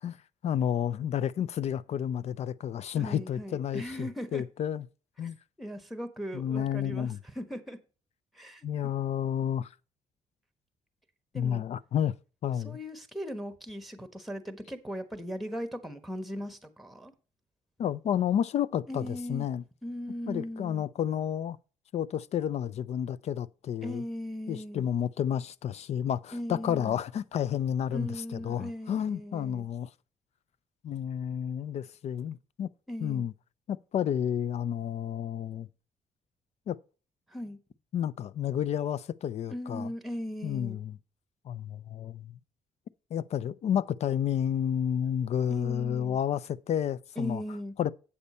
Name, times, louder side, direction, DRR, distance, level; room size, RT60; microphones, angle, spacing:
voice 1, 0.0-4.9 5.2-5.4 6.3-7.2 8.6-9.7 11.3-12.1 12.4-12.8 17.8-19.6 20.3-21.6 21.9-24.0 24.5-29.9 30.8-32.7 33.0-33.3 33.7-35.7 36.7-36.8 37.9-39.9 40.4-41.0 41.4-42.4 43.1-47.4 47.8-47.9, left 9 dB, 55° left, 0.4 m, -31 dB
voice 2, 2.9-4.4 5.6-7.8 8.3-8.7 11.3-11.6 12.6-17.1 18.9-19.5 19.8-20.8 23.8-24.9 26.3-27.0 27.9-29.7 32.9-33.2 37.3-37.6 39.5-40.8 45.5-46.2 47.2-47.7, equal, ahead, 1.2 m, -38 dB
8.5 x 6.7 x 4.2 m
cardioid pair, 90°, 13 cm